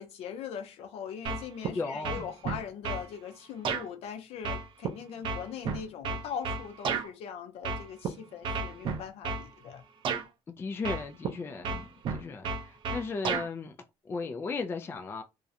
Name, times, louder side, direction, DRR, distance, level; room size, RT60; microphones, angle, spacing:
voice 1, 0.0-9.8, left 7 dB, 70° left, 0.6 m, -41 dB
sound 1, 1.2-1.7 2.0-3.1 3.6-3.8 4.4-7.1 7.6-8.1 8.4-9.5 10.0-10.2 10.8-11.3 11.6-13.5, right 5 dB, 50° right, 0.5 m, -32 dB
voice 2, 1.7-2.3 10.5-13.8 14.0-15.2, left 4 dB, 20° left, 0.3 m, -36 dB
2.4 x 2.0 x 2.7 m
cardioid pair, 135°, 11 cm